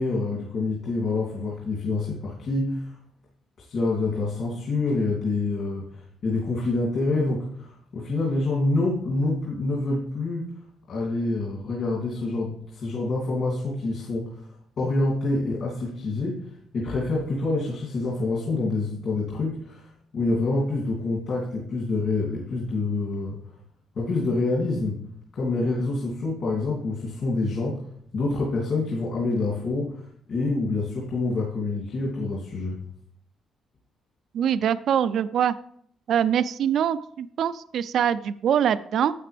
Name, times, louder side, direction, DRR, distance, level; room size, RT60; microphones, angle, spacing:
voice 1, 0.0-2.9 3.7-10.5 10.9-14.4 14.8-16.5 16.7-23.4 23.9-25.0 25.3-27.8 28.1-32.8, left 2 dB, 50° left, -5 dB, 2.6 m, -27 dB
voice 2, 34.3-35.5 36.1-39.1, right 9 dB, 60° right, 14 dB, 0.4 m, -23 dB
12.0 x 8.3 x 3.4 m, 0.65 s
cardioid pair, 155°, 0 cm